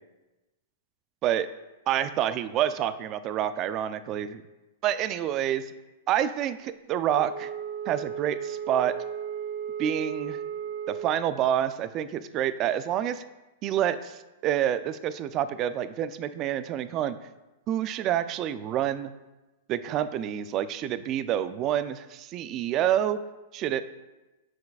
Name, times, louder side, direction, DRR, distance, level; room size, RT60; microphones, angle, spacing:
voice 1, 1.9-4.4 4.8-5.6 6.1-7.5 7.9-8.9 9.8-10.4 10.9-13.2 13.6-17.2 17.7-19.1 19.7-23.2 23.5-23.8, right 10 dB, 35° right, 13 dB, 0.3 m, -28 dB
Wind instrument woodwind instrument, 7.1-11.2, right 8 dB, 75° right, 0.7 m, -35 dB
9.4 x 4.8 x 2.3 m, 1.1 s
hypercardioid pair, 130°, 0 cm